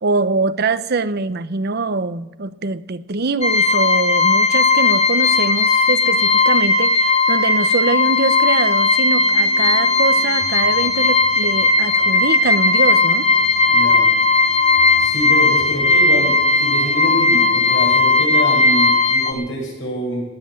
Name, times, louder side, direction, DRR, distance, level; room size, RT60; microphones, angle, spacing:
voice 1, 0.0-13.3, right 3 dB, 55° right, 0.7 m, -23 dB
sound 1, 3.4-19.3, left 3 dB, 35° left, 1.6 m, -16 dB
sound 2, 9.2-18.9, right 1 dB, ahead, 5.6 m, -41 dB
voice 2, 13.7-14.0 15.0-20.2, equal, 70° left, 7.5 m, -26 dB
20.0 x 7.7 x 8.9 m
head